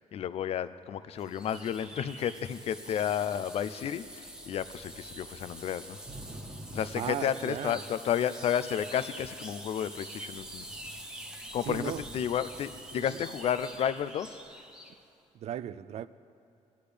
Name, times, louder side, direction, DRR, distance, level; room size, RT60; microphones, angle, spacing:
voice 1, 0.1-6.0 6.7-10.6 11.5-14.4, left 9 dB, 50° left, 14 dB, 0.4 m, -32 dB
sound 1, 1.2-15.0, right 1 dB, 5° right, 1.0 m, -46 dB
Thunder / Rain, 4.0-8.1 8.8-9.3 9.7-9.9 10.1-13.9, right 1 dB, 30° right, 1.3 m, -51 dB
voice 2, 7.0-7.8 11.7-12.0 13.1-13.2 15.3-16.1, right 10 dB, 55° right, 15 dB, 0.4 m, -36 dB
20.5 x 10.0 x 3.4 m, 2.6 s
cardioid pair, 135°, 13 cm